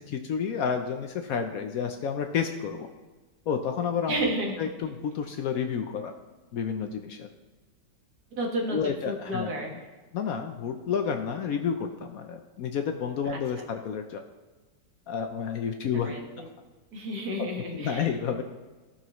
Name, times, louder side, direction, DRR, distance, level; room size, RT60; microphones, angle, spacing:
voice 1, 0.0-2.9 3.5-4.2 4.6-6.1 6.5-7.3 8.7-9.8 10.1-14.2 15.1-16.1 17.4-17.5 17.7-18.4, left 7 dB, 65° left, 6 dB, 0.9 m, -30 dB
voice 2, 4.1-4.6 8.4-9.9 13.3-13.4 16.0-16.5 16.9-18.1, right 1 dB, 60° right, -1 dB, 2.1 m, -31 dB
15.5 x 5.6 x 3.0 m, 1.3 s
omnidirectional pair, 1.8 m